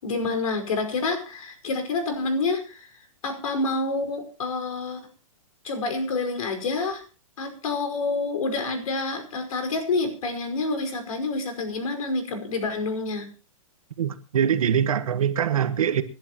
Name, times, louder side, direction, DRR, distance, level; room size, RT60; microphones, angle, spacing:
voice 1, 0.0-2.9 3.2-5.0 5.6-7.0 7.4-13.3, left 3 dB, 80° left, 6 dB, 5.2 m, -28 dB
voice 2, 14.0-16.0, right 8 dB, 85° right, 11 dB, 1.6 m, -23 dB
26.0 x 11.5 x 3.0 m, 0.37 s
hypercardioid pair, 150°, 18 cm